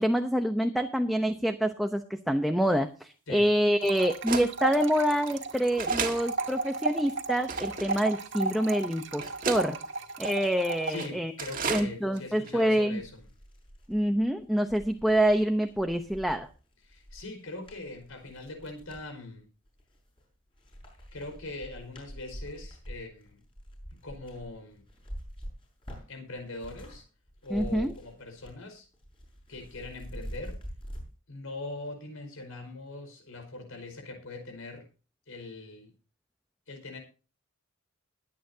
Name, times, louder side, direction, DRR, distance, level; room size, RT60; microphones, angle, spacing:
voice 1, 0.0-9.8 10.2-11.3 11.7-13.0 13.9-16.5 27.5-27.9, equal, ahead, 5 dB, 0.8 m, -26 dB
sound 1, 2.6-2.7 3.5-3.6 4.3-4.5 5.2-5.4 5.8-6.2 6.8-6.9 7.5-8.0 8.7-8.8 9.2-9.6 10.2-10.5 10.9-11.1 11.4-11.9 12.2-12.3 12.4-12.5, right 5 dB, 40° right, 1.8 m, -33 dB
sound 2, 3.8-11.1, right 3 dB, 60° right, 1.7 m, -34 dB
voice 2, 10.9-13.2 16.8-19.5 21.1-23.4 23.9-24.8 26.1-27.1 27.4-28.9 29.5-30.6 31.3-34.9 35.3-35.9 36.7-37.0, left 2 dB, 85° left, 5 dB, 5.0 m, -41 dB
sound 3, 12.9-19.1 19.7-20.3 20.6-27.0 27.3-28.7 28.9-31.0, equal, 25° left, 6.4 m, -45 dB
22.0 x 9.0 x 2.8 m, 0.34 s
head